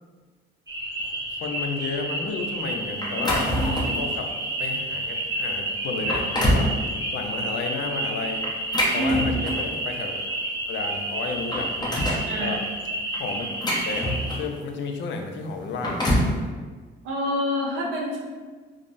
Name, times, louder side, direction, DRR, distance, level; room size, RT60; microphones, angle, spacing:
sound 1, 0.7-14.4, right 1 dB, 20° right, 0.5 m, -30 dB
voice 1, 1.4-3.5 4.0-4.3 4.6-6.7 7.1-8.5 8.9-10.4 10.7-11.7 12.4-12.6 13.1-13.5 13.9-16.1, left 4 dB, 70° left, 4 dB, 0.4 m, -32 dB
sound 2, 3.0-4.0 4.6-4.8 5.4-5.5 5.9-6.7 8.4-9.8 10.8-10.9 11.2-12.3 13.1-14.6 15.6-16.4, equal, 20° left, 0.7 m, -25 dB
voice 2, 3.5-3.9 8.9-9.3 12.2-12.6 17.0-18.2, left 1 dB, 85° right, -3 dB, 0.7 m, -27 dB
3.5 x 2.0 x 2.5 m, 1.4 s
cardioid pair, 90°, 20 cm